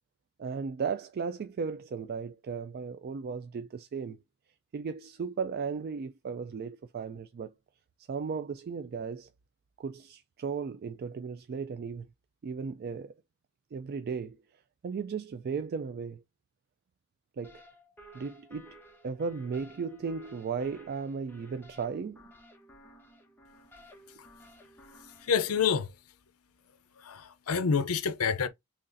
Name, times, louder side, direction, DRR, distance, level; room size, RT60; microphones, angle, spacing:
voice 1, 0.4-4.2 4.7-7.5 8.1-9.3 9.8-12.1 12.4-13.1 13.7-14.4 14.8-16.2 17.4-17.6 18.1-18.8 19.0-22.3, right 5 dB, 45° right, 0.3 m, -36 dB
sound 1, 17.4-25.8, right 1 dB, 10° left, 0.9 m, -55 dB
voice 2, 25.0-26.0 27.0-28.5, left 6 dB, 70° left, 0.6 m, -28 dB
3.9 x 3.1 x 2.5 m
head